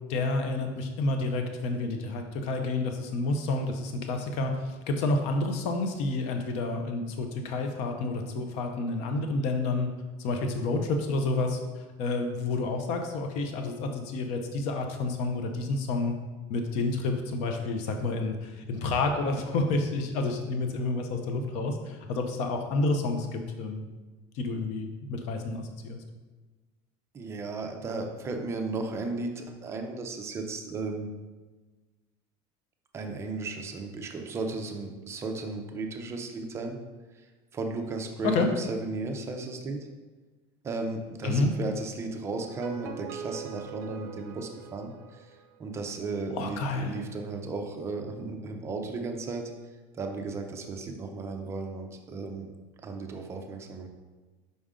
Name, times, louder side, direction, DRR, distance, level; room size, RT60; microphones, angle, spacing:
voice 1, 0.1-9.9 10.2-16.1 16.5-23.8 24.3-26.0 38.2-38.5 41.2-41.5 46.3-47.0, left 3 dB, 50° left, 5 dB, 0.6 m, -29 dB
voice 2, 27.1-31.1 32.9-36.8 37.5-39.8 40.6-45.3 45.6-49.5 49.9-52.5 52.8-53.9, right 3 dB, 20° right, 3 dB, 0.5 m, -35 dB
sound 1, 42.4-45.6, right 8 dB, 60° right, 0.6 m, -42 dB
5.4 x 5.0 x 3.6 m, 1.3 s
cardioid pair, 175°, 14 cm